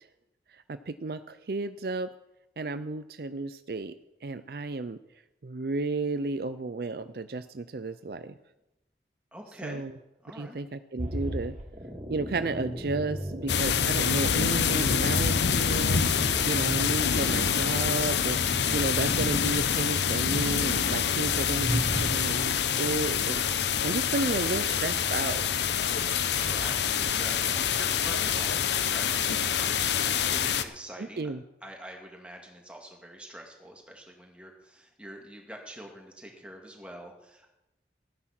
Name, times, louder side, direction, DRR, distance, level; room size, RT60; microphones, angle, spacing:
voice 1, 0.5-2.1 2.6-3.9 4.2-5.0 5.4-8.3 9.6-9.9 10.4-11.5 12.1-18.4 18.7-25.7 31.0-31.4, right 3 dB, 55° right, 12 dB, 0.5 m, -33 dB
voice 2, 9.3-9.9 10.2-10.6 25.7-31.3 31.6-37.5, right 1 dB, 5° right, 1 dB, 2.2 m, -45 dB
sound 1, 11.0-14.0 15.4-17.7 18.2-20.1 21.1-22.2, equal, 40° right, 2.7 m, -36 dB
sound 2, 13.5-30.6, left 7 dB, 80° left, 0.8 m, -26 dB
14.5 x 9.8 x 5.9 m, 0.93 s
head